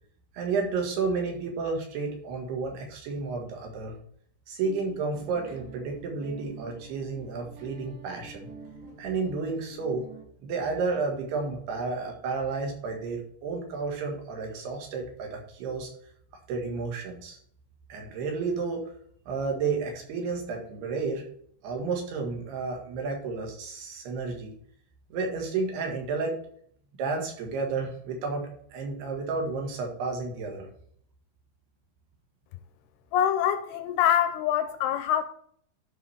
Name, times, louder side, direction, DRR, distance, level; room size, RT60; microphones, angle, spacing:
voice 1, 0.3-4.0 4.5-8.5 9.0-10.1 10.4-15.9 16.5-17.4 17.9-18.8 19.3-21.2 21.6-24.5 25.1-26.4 27.0-30.7, right 4 dB, 70° right, 3.7 m, -31 dB
Guitar, 4.6-10.2, right 3 dB, 55° right, 4.2 m, -48 dB
voice 2, 33.1-35.2, left 10 dB, 80° left, 2.4 m, -24 dB
12.0 x 5.6 x 3.5 m
omnidirectional pair, 4.9 m